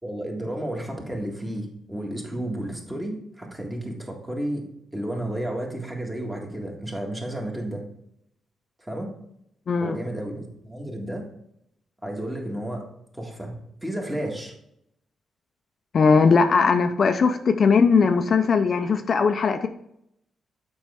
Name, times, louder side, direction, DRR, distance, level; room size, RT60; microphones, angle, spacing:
voice 1, 0.0-4.6 4.9-7.8 8.8-9.1 9.8-11.3 12.0-12.9 13.1-13.5 13.8-14.5, right 1 dB, 15° right, 0 dB, 1.7 m, -32 dB
voice 2, 9.7-10.0 15.9-19.7, left 5 dB, 50° left, 7 dB, 0.5 m, -19 dB
7.3 x 5.3 x 3.5 m, 0.76 s
cardioid pair, 95°, 0 cm